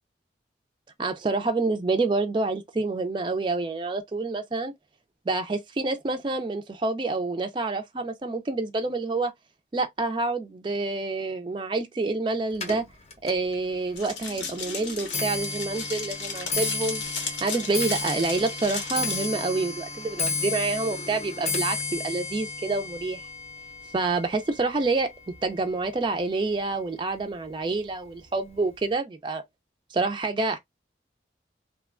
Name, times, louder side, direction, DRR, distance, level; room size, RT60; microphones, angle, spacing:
voice 1, 1.0-4.7 5.3-9.3 9.7-12.9 13.2-23.3 23.9-25.1 25.4-29.4 29.9-30.6, right 3 dB, 25° right, 0.3 m, -28 dB
Clock, 12.5-25.9 26.2-26.7 27.5-27.6 27.9-28.3 28.5-28.6, left 3 dB, 35° left, 0.6 m, -33 dB
sound 1, 14.0-19.3, left 5 dB, 85° left, 0.8 m, -35 dB
3.0 x 2.1 x 2.3 m
head